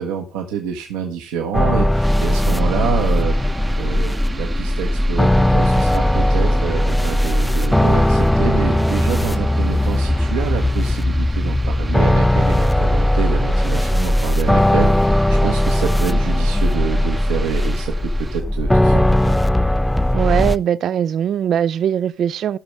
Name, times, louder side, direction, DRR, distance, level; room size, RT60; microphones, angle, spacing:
voice 1, 0.0-19.3, right 7 dB, 80° right, 1.1 m, -27 dB
sound 1, 1.5-20.6, left 1 dB, 5° left, 0.4 m, -18 dB
sound 2, 2.0-18.4, right 3 dB, 30° right, 0.7 m, -35 dB
voice 2, 20.1-22.6, right 9 dB, 60° right, 0.4 m, -20 dB
16.5 x 6.1 x 3.2 m
hypercardioid pair, 60°, 0 cm